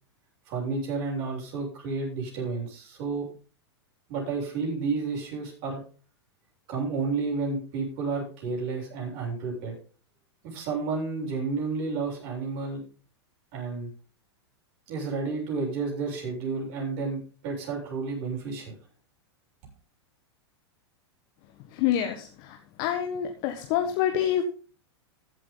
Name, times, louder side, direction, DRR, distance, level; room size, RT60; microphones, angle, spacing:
voice 1, 0.5-3.2 4.1-5.8 6.7-9.7 10.4-12.8 13.5-13.9 14.9-18.7, right 4 dB, 50° right, -2 dB, 7.5 m, -31 dB
voice 2, 21.8-24.4, left 10 dB, 50° left, 5 dB, 1.6 m, -27 dB
15.0 x 8.5 x 4.0 m, 0.37 s
hypercardioid pair, 110°, 14 cm